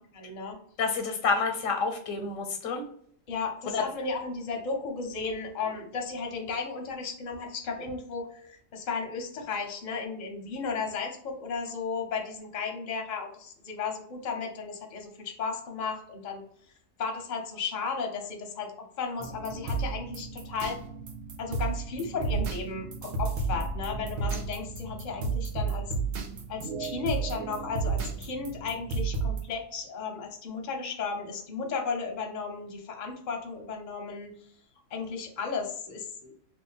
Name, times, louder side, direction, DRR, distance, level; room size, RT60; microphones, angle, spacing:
voice 1, 0.1-0.6 3.3-16.4 17.0-20.8 21.4-25.9 26.5-34.3 34.9-36.3, left 5 dB, 45° left, 2 dB, 0.7 m, -34 dB
voice 2, 0.8-2.8 3.7-3.8, left 4 dB, 90° left, 5 dB, 1.0 m, -28 dB
sound 1, 19.2-29.4, right 4 dB, 80° right, 1.0 m, -33 dB
2.6 x 2.4 x 3.9 m, 0.64 s
omnidirectional pair, 1.3 m